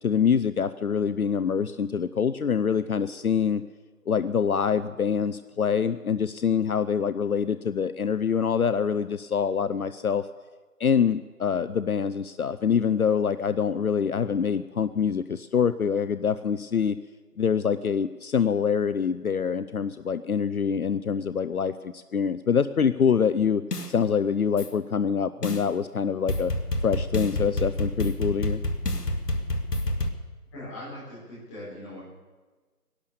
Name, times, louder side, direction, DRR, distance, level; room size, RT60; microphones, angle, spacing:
voice 1, 0.0-3.6 4.1-10.3 10.8-17.0 17.4-23.6 23.9-26.5 26.8-28.6, left 7 dB, 65° left, 12 dB, 0.7 m, -25 dB
sound 1, 23.7-23.9 24.6-24.7 25.4-25.6 26.3-30.1, left 1 dB, 85° left, 2.0 m, -28 dB
voice 2, 30.5-32.0, left 1 dB, 10° left, -9 dB, 4.4 m, -40 dB
18.0 x 12.0 x 6.8 m, 1.3 s
figure-of-eight pair, 170°, 46 cm